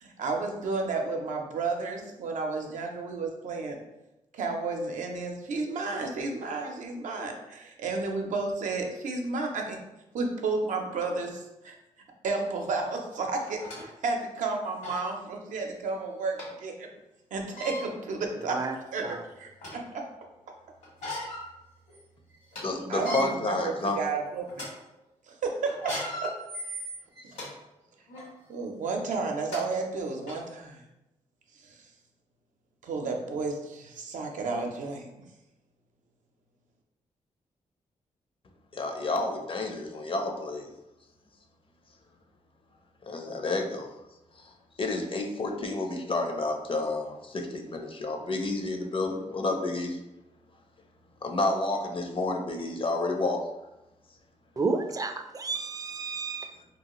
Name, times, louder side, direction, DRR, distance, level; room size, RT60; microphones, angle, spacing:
voice 1, 0.0-3.8 4.3-9.8 10.1-11.7 12.2-16.7 17.3-18.6 18.9-20.1 22.9-24.5 25.3-25.9 26.2-26.3 28.5-30.8 31.6-31.7 32.8-35.1, right 3 dB, 80° right, 2 dB, 0.5 m, -32 dB
sound 1, 12.6-12.7 13.4-13.8 14.4-14.5 14.8-15.1 16.4-16.5 17.4-17.8 18.6-18.7 19.2-19.9 20.8-21.5 21.9-22.0 22.3-22.6 22.9-23.3 23.9-24.1 24.5-24.7 25.7-27.5 28.1-28.3 29.1-29.2 29.5-29.6 30.3-30.4, left 1 dB, 80° left, 1.4 m, -37 dB
voice 2, 22.6-24.0 38.7-40.7 43.1-43.9 44.8-50.0 51.2-53.4, left 2 dB, 45° left, 3 dB, 0.5 m, -30 dB
voice 3, 54.6-56.5, right 4 dB, 30° right, 7 dB, 0.3 m, -31 dB
2.8 x 2.3 x 2.9 m, 0.94 s
cardioid pair, 65°, 13 cm